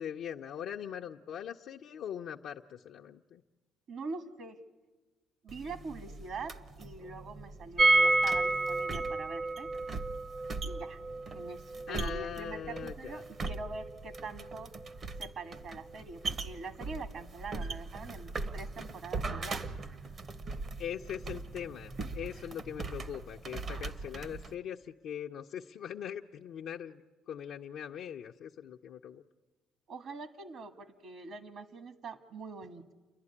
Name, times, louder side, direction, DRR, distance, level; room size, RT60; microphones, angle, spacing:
voice 1, 0.0-3.4 11.9-13.2 20.8-27.0 27.3-29.2, left 9 dB, 65° left, 0 dB, 0.6 m, -41 dB
voice 2, 3.9-4.6 5.4-9.7 10.6-11.0 11.3-14.7 15.2-19.7 29.9-32.9, right 3 dB, 55° right, 10 dB, 1.6 m, -44 dB
sound 1, 5.5-24.5, right 3 dB, 40° right, 0.9 m, -41 dB
sound 2, 7.8-13.6 13.8-13.9 14.2-14.3, right 2 dB, 15° right, 0.6 m, -29 dB
29.5 x 11.5 x 9.8 m, 1.2 s
cardioid pair, 115°, 0 cm